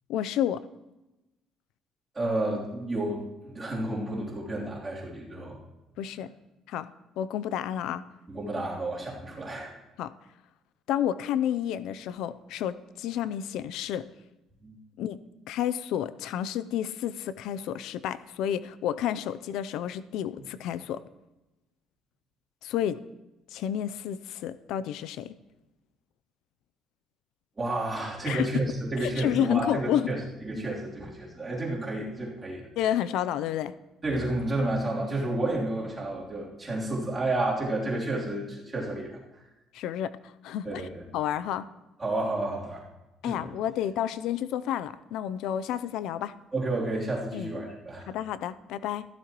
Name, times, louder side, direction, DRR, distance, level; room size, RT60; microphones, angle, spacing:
voice 1, 0.1-0.6 6.0-6.3 6.7-6.9 7.2-8.0 10.0-10.1 10.9-14.0 15.0-15.2 15.5-21.0 22.6-23.0 23.5-25.3 28.3-28.7 29.0-30.1 32.8-33.7 39.7-40.1 40.4-40.9 41.1-41.7 43.2-46.3 47.3-47.5 48.1-49.0, left 10 dB, 80° left, 15 dB, 0.5 m, -30 dB
voice 2, 2.1-5.6 8.3-9.8 14.6-14.8 27.6-32.6 34.0-39.2 40.6-41.0 42.0-42.8 43.2-43.5 46.5-48.1, right 2 dB, 20° right, -5 dB, 3.2 m, -31 dB
14.5 x 12.5 x 3.0 m, 1.0 s
cardioid pair, 120°, 0 cm